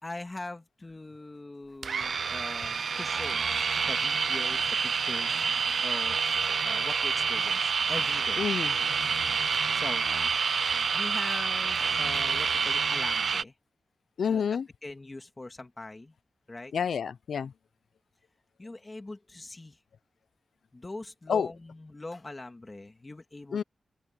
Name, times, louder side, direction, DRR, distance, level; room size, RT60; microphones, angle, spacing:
voice 1, 0.0-3.4 3.9-5.5 5.8-8.4 9.7-10.1 10.9-13.5 14.3-14.4 14.8-16.1 16.5-16.7 18.6-19.8 20.7-23.6, left 2 dB, 20° left, 1.9 m, -42 dB
sound 1, 1.8-13.4, right 5 dB, 60° right, 0.5 m, -28 dB
voice 2, 8.4-8.8 14.2-14.7 16.7-17.5 21.3-21.5 23.5-23.6, left 7 dB, 80° left, 0.5 m, -28 dB
open air
wide cardioid pair, 165°, 0 cm